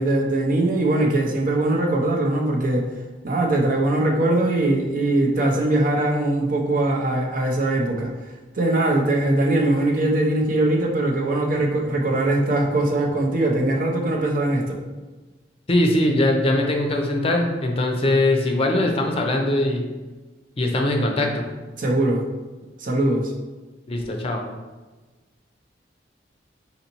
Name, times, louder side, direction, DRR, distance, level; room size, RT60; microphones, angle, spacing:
voice 1, 0.0-2.9 3.2-8.1 8.5-14.8 21.8-22.2 22.8-23.3, right 2 dB, 45° right, 1 dB, 0.6 m, -21 dB
voice 2, 15.7-19.9 20.6-21.4 23.9-24.4, left 1 dB, 30° left, 2 dB, 0.5 m, -21 dB
4.1 x 4.0 x 2.9 m, 1.2 s
head